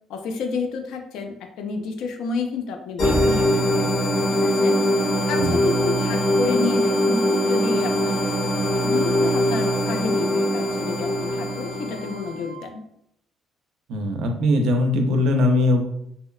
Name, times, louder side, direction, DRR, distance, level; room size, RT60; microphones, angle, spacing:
voice 1, 0.1-3.9 4.4-4.7 5.3-8.2 8.8-12.8, left 4 dB, 80° left, 5 dB, 0.3 m, -30 dB
sound 1, 3.0-12.3, equal, 55° left, 1.2 m, -22 dB
Wind instrument woodwind instrument, 4.1-12.7, right 5 dB, 25° right, 0.5 m, -43 dB
voice 2, 13.9-15.8, left 1 dB, 75° right, 4 dB, 0.4 m, -20 dB
2.7 x 2.0 x 2.3 m, 0.76 s
cardioid pair, 145°, 0 cm